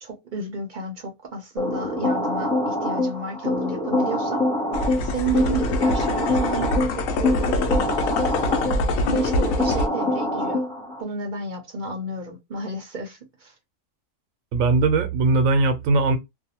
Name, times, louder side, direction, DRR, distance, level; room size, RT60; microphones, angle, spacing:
voice 1, 0.0-4.5 5.0-7.8 8.7-10.7 11.0-13.5, right 3 dB, 50° right, 0.6 m, -32 dB
sound 1, 1.6-11.0, left 1 dB, 5° left, 0.3 m, -25 dB
sound 2, 4.7-9.9, left 2 dB, 85° left, 1.0 m, -25 dB
voice 2, 14.5-16.2, right 3 dB, 90° right, 1.0 m, -19 dB
2.6 x 2.1 x 2.7 m
omnidirectional pair, 1.3 m